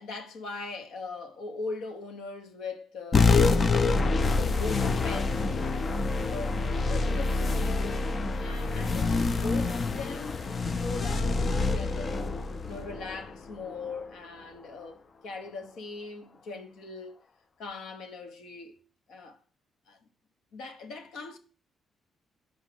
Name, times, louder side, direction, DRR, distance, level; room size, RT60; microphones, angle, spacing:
voice 1, 0.0-3.9 4.3-5.5 6.3-12.3 12.6-15.0 15.2-17.2 17.6-18.8 19.1-19.4 19.9-20.0 20.5-21.4, left 3 dB, 85° left, 1.1 m, -40 dB
sound 1, 3.1-14.0, left 3 dB, 30° left, 0.4 m, -26 dB
5.9 x 4.6 x 6.0 m
cardioid pair, 175°, 0 cm